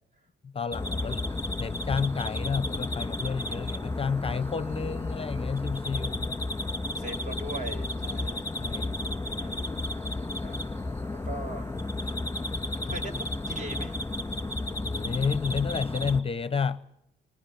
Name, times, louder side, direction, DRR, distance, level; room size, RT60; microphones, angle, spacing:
voice 1, 0.5-1.2 1.6-6.3 8.5-9.0 14.8-16.8, left 5 dB, 30° left, 0.8 m, -30 dB
sound 1, 0.7-16.2, left 2 dB, 10° left, 2.3 m, -32 dB
voice 2, 6.4-8.5 9.3-9.7 10.1-10.6 11.2-11.7 12.8-13.9, right 1 dB, 40° right, 6.3 m, -41 dB
20.5 x 20.0 x 9.3 m
cardioid pair, 90°, 20 cm